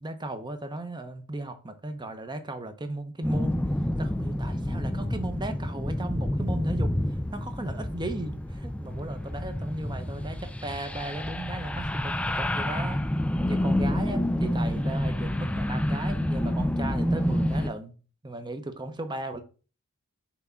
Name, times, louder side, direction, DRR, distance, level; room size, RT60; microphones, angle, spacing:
voice 1, 0.0-3.6 4.0-6.9 7.3-13.0 13.5-18.0 18.2-19.4, right 2 dB, 20° right, 0.8 m, -36 dB
sound 1, 3.2-17.7, left 1 dB, 5° left, 0.3 m, -28 dB
6.1 x 3.5 x 5.6 m
head